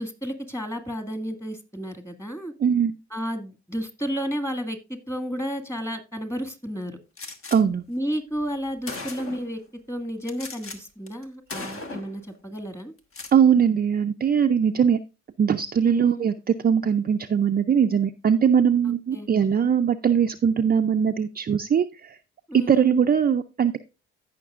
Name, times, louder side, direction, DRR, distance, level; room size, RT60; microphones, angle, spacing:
voice 1, 0.0-2.5 3.1-7.0 7.9-9.6 9.9-12.9 15.9-16.2 19.1-19.3 22.5-22.9, equal, 10° left, 8 dB, 1.9 m, -32 dB
voice 2, 2.6-2.9 7.5-7.8 11.6-11.7 13.3-15.0 15.4-22.2 22.5-23.8, right 7 dB, 30° right, 6 dB, 0.5 m, -21 dB
Gunshot gunfire, 7.2-7.6 8.4-8.5 8.9-9.5 10.3-10.8 11.1-11.2 11.5-12.2 13.0-13.4, left 3 dB, 45° left, 1.5 m, -37 dB
15.5 x 5.8 x 2.4 m, 0.28 s
cardioid pair, 90°, 30 cm